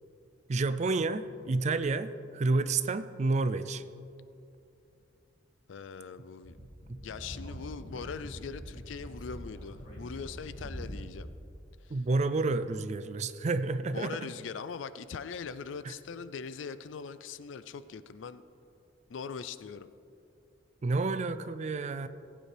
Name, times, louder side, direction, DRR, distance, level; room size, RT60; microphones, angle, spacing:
voice 1, 0.5-3.8 11.9-14.1 15.9-16.0 20.8-22.1, right 3 dB, 35° right, 13 dB, 0.4 m, -29 dB
voice 2, 5.7-6.6 7.0-11.3 11.8-12.0 13.9-18.4 19.1-19.9, left 5 dB, 75° left, 13 dB, 0.4 m, -41 dB
Speech / Wind, 6.4-11.3, equal, 45° left, 2.2 m, -44 dB
19.0 x 8.9 x 3.4 m, 2.6 s
head